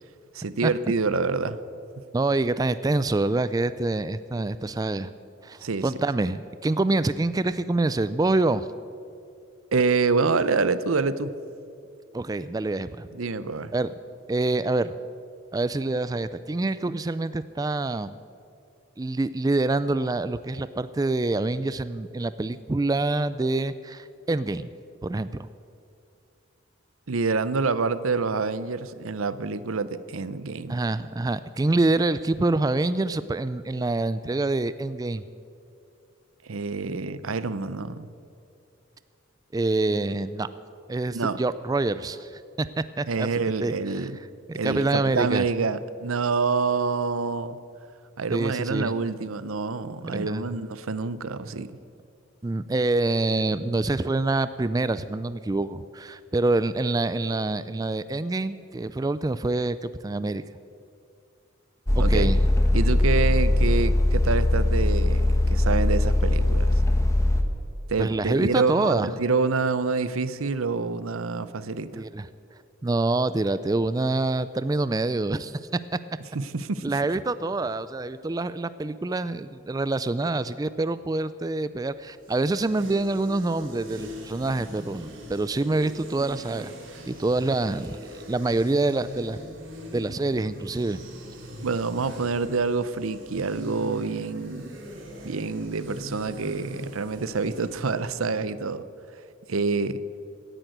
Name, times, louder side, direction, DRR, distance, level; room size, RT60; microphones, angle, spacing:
voice 1, 0.3-1.6 5.6-5.9 9.7-11.3 13.1-13.7 27.1-30.8 36.4-38.1 41.1-41.4 43.1-44.2 44.5-47.6 48.2-51.7 62.0-62.3 62.7-66.7 67.9-72.0 76.3-76.8 91.6-94.7 95.2-98.9 99.5-100.0, right 4 dB, 85° right, 15 dB, 0.7 m, -27 dB
voice 2, 2.1-5.1 5.4-8.7 12.1-13.1 13.7-13.9 14.3-14.9 15.5-18.2 19.0-24.7 25.0-25.3 30.7-35.2 39.5-40.5 40.9-43.3 43.6-44.1 44.5-45.4 48.3-48.9 50.0-50.4 52.4-60.4 61.9-62.4 68.0-69.1 71.9-72.3 72.8-75.6 76.8-86.7 87.1-88.0 88.3-89.4 89.9-91.0, right 2 dB, 20° right, 14 dB, 0.3 m, -26 dB
sound 1, 61.9-67.4, left 1 dB, 15° left, 1.1 m, -21 dB
sound 2, 82.0-97.9, equal, 65° right, 3.0 m, -42 dB
17.0 x 10.5 x 8.0 m, 2.5 s
head